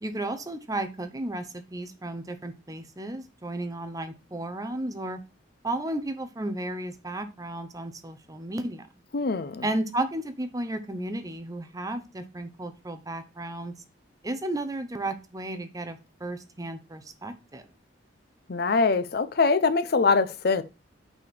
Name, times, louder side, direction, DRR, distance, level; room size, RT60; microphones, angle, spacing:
voice 1, 0.0-5.2 5.6-8.8 9.6-13.7 14.2-17.6, right 1 dB, 20° right, 0.7 m, -33 dB
voice 2, 9.1-9.6 18.5-20.6, left 4 dB, 55° left, 0.6 m, -23 dB
5.7 x 4.4 x 5.9 m
head